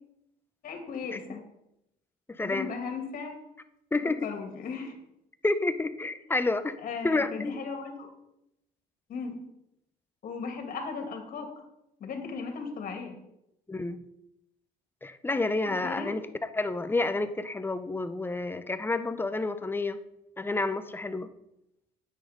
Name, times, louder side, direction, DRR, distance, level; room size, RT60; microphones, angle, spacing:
voice 1, 0.6-1.4 2.4-3.3 4.0-4.9 6.8-8.1 9.1-9.4 10.2-11.5 12.0-13.2 15.6-16.1, left 5 dB, 55° left, 4 dB, 2.5 m, -36 dB
voice 2, 2.4-2.7 3.9-4.3 5.4-6.7 7.0-7.6 13.7-14.0 15.0-16.2 16.5-20.0 20.4-21.3, left 2 dB, 10° left, 11 dB, 0.8 m, -29 dB
9.6 x 8.8 x 5.2 m, 0.83 s
cardioid pair, 110°, 17 cm